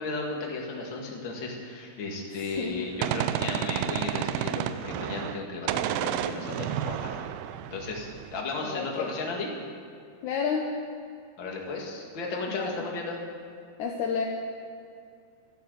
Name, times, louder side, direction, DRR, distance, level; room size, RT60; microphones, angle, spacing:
voice 1, 0.0-7.3 7.7-9.5 11.4-13.2, left 3 dB, 40° left, -1 dB, 2.0 m, -35 dB
voice 2, 2.6-2.9 8.6-9.1 10.2-10.8 12.5-12.9 13.8-14.3, left 6 dB, 75° left, 1 dB, 1.7 m, -30 dB
Gunshot gunfire, 2.6-5.4 5.7-8.4, right 11 dB, 85° right, 2.3 m, -31 dB
12.5 x 12.0 x 7.8 m, 2.4 s
omnidirectional pair, 4.7 m